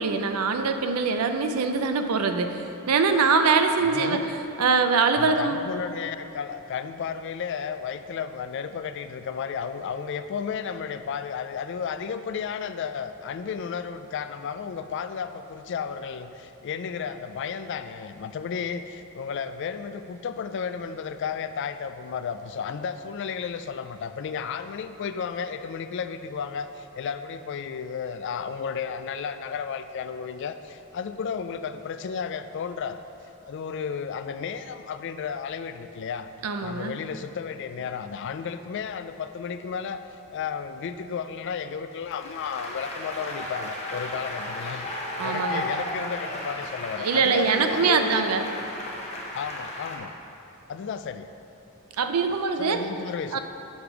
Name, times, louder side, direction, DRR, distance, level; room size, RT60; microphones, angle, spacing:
voice 1, 0.0-4.2 4.6-5.6 36.4-36.9 45.2-45.7 47.0-48.4 52.0-52.8 53.3-53.4, right 5 dB, 85° right, 7 dB, 0.5 m, -23 dB
voice 2, 3.8-4.2 5.2-33.0 33.5-36.3 36.6-40.0 40.3-48.5 49.3-50.1 50.7-51.3 52.6-53.4, left 6 dB, 55° left, 10 dB, 0.3 m, -33 dB
Applause, 42.0-50.0, left 1 dB, 30° left, 0.9 m, -34 dB
6.5 x 5.1 x 5.9 m, 2.9 s
head